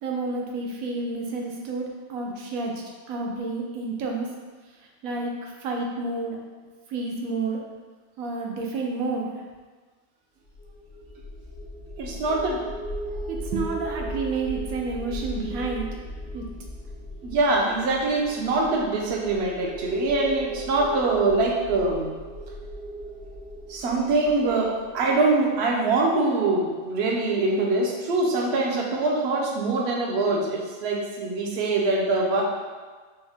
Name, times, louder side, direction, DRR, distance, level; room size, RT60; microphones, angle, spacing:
voice 1, 0.0-2.7 3.1-4.3 5.0-6.4 6.9-7.6 8.2-9.4 13.3-15.9 16.3-16.4, right 3 dB, 85° right, 0 dB, 1.1 m, -30 dB
sound 1, 10.4-25.6, right 1 dB, 35° left, 0.5 m, -37 dB
voice 2, 12.0-12.6 17.2-22.1 23.7-32.4, right 3 dB, 60° right, -1 dB, 0.8 m, -24 dB
4.4 x 2.1 x 3.4 m, 1.4 s
omnidirectional pair, 1.4 m